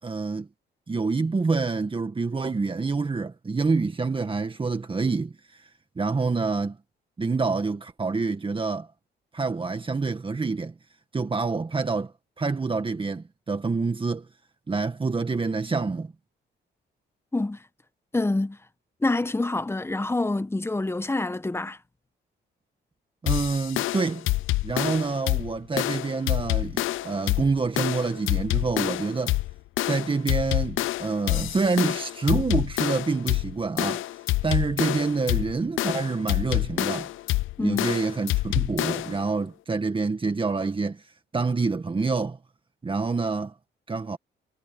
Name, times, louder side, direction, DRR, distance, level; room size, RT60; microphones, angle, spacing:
voice 1, 0.0-0.5 0.9-5.7 6.0-6.8 7.2-8.9 9.3-10.8 11.1-14.3 14.7-16.1 23.2-24.3 24.6-29.4 29.9-34.1 34.4-37.1 37.6-42.4 42.8-43.6 43.9-44.2, right 4 dB, 25° right, 1.8 m, -27 dB
voice 2, 18.1-18.6 19.0-21.8 37.6-37.9, left 2 dB, 10° left, 1.1 m, -26 dB
sound 1, 23.3-39.2, left 18 dB, 85° left, 0.6 m, -27 dB
cardioid pair, 90°, 20 cm